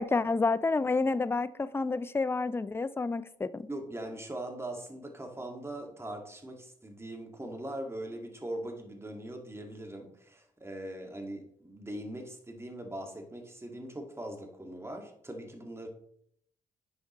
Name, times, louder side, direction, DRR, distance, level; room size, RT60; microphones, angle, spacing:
voice 1, 0.0-3.7, left 3 dB, 15° left, 0.4 m, -29 dB
voice 2, 3.7-15.9, right 1 dB, 15° right, 1.8 m, -41 dB
10.5 x 5.0 x 3.0 m
supercardioid pair, 50°, 16 cm